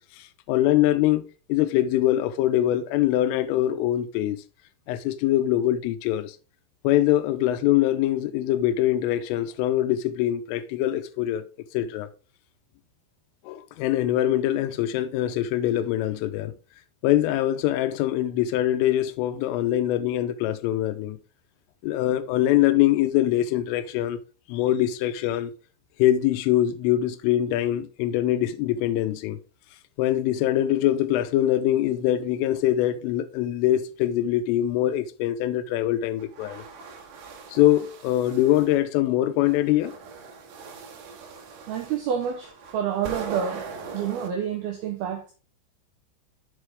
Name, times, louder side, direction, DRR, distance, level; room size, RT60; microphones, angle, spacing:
voice 1, 0.2-4.4 4.9-6.4 6.8-11.4 11.7-12.1 13.5-16.5 17.0-21.2 21.8-24.2 24.5-25.5 26.0-29.4 30.0-36.6 37.5-39.9, left 13 dB, 90° left, 3.3 m, -23 dB
sound 1, 36.2-38.8 39.4-44.3, right 5 dB, 65° right, 3.3 m, -41 dB
voice 2, 41.7-43.6 43.9-45.3, right 8 dB, 85° right, 2.2 m, -28 dB
7.8 x 6.4 x 3.5 m
omnidirectional pair, 5.6 m